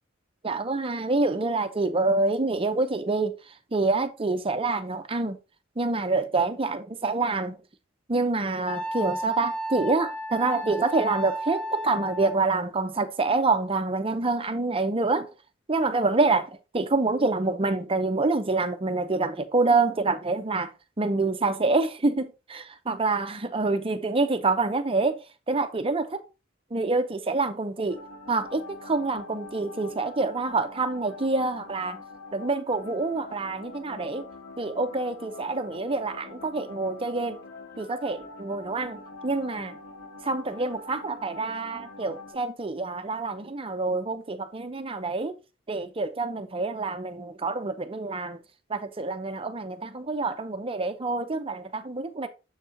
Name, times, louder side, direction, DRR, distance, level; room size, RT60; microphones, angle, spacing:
voice 1, 0.4-3.4 3.7-5.4 5.8-7.6 8.1-15.3 15.7-20.7 21.0-26.2 26.7-28.0 28.3-32.0 32.3-34.3 34.6-37.4 37.8-39.8 40.2-45.4 45.7-48.4 48.7-52.3, right 3 dB, 30° right, 0.7 m, -27 dB
Wind instrument woodwind instrument, 8.7-12.5, equal, 5° left, 0.8 m, -33 dB
sound 1, 27.9-42.3, left 3 dB, 80° left, 3.2 m, -44 dB
7.2 x 4.2 x 3.8 m
head